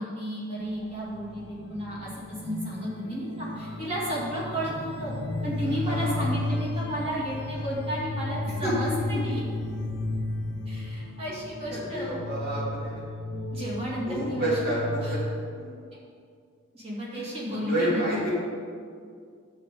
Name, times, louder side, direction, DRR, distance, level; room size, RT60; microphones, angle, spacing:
voice 1, 0.0-2.1 2.4-5.1 5.4-9.4 10.7-12.1 13.5-14.6 15.0-15.1 16.7-18.1, equal, 30° right, -6 dB, 2.5 m, -33 dB
sound 1, 0.6-15.3, left 2 dB, 50° left, 0.8 m, -33 dB
voice 2, 5.6-6.1 8.6-8.7 9.1-9.2 11.7-13.0 14.1-15.2 15.5-15.8 17.1-18.3, right 1 dB, 45° right, -8 dB, 2.5 m, -30 dB
10.5 x 8.1 x 3.8 m, 2.2 s
head